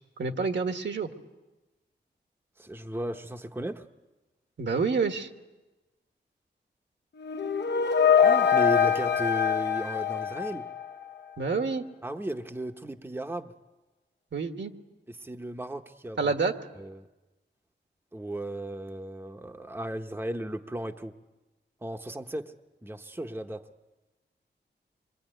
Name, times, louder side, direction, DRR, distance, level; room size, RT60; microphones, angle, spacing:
voice 1, 0.2-1.1 4.6-5.3 11.4-11.8 14.3-14.7 16.2-16.5, right 4 dB, 70° right, 6 dB, 1.7 m, -28 dB
voice 2, 2.6-3.9 8.2-10.7 12.0-13.5 15.1-16.3 16.8-17.1 18.1-21.2 21.8-22.5 22.8-23.7, right 1 dB, 10° right, 5 dB, 0.9 m, -35 dB
sound 1, 7.2-11.1, left 7 dB, 65° left, 1.0 m, -24 dB
27.0 x 23.5 x 9.2 m, 1.1 s
wide cardioid pair, 135°, 19 cm